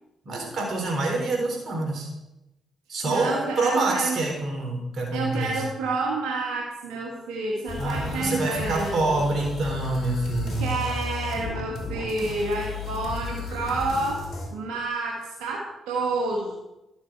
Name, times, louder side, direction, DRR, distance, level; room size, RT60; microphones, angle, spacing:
voice 1, 0.3-2.1 2.9-5.6 7.8-10.8, right 2 dB, 55° right, 0 dB, 3.7 m, -26 dB
voice 2, 3.0-4.2 5.1-9.2 10.6-14.2 14.5-16.5, right 3 dB, 85° right, -2 dB, 1.4 m, -29 dB
sound 1, 7.7-14.5, left 4 dB, 65° left, 2.5 m, -34 dB
12.0 x 7.1 x 4.5 m, 0.95 s
supercardioid pair, 50°, 0 cm